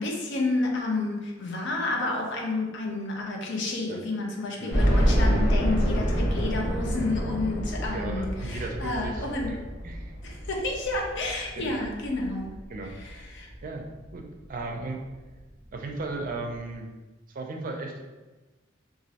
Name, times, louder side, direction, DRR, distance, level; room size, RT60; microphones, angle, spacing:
voice 1, 0.0-9.6 10.2-12.6 12.9-13.5, left 2 dB, 65° left, 0 dB, 0.6 m, -30 dB
sound 1, 4.7-13.6 14.1-14.2 14.6-14.7 15.9-16.0 16.2-16.3, equal, ahead, 1.1 m, -27 dB
voice 2, 7.9-9.6 9.8-10.1 11.6-11.7 12.7-13.3 13.6-13.8 14.1-15.0 15.7-16.9 17.3-18.0, right 3 dB, 45° right, 2 dB, 0.4 m, -36 dB
3.0 x 2.4 x 2.8 m, 1.2 s
head